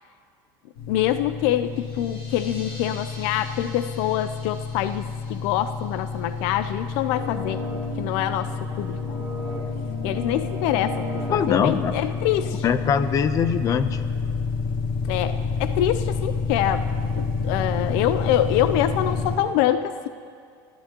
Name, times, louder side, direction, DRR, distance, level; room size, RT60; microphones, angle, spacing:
sound 1, 0.8-19.4, left 4 dB, 90° left, 3.4 m, -29 dB
voice 1, 0.9-7.6 8.0-9.2 10.0-12.6 15.0-20.1, left 11 dB, 65° left, 12 dB, 0.5 m, -25 dB
sound 2, 1.6-7.2, left 1 dB, 50° left, 4.2 m, -46 dB
Horror Atmosphere, 7.1-12.9, equal, 30° right, 3.1 m, -36 dB
voice 2, 11.3-11.9 12.6-14.0, left 7 dB, 35° left, 11 dB, 0.8 m, -22 dB
28.0 x 15.5 x 3.0 m, 2.3 s
cardioid pair, 145°, 10 cm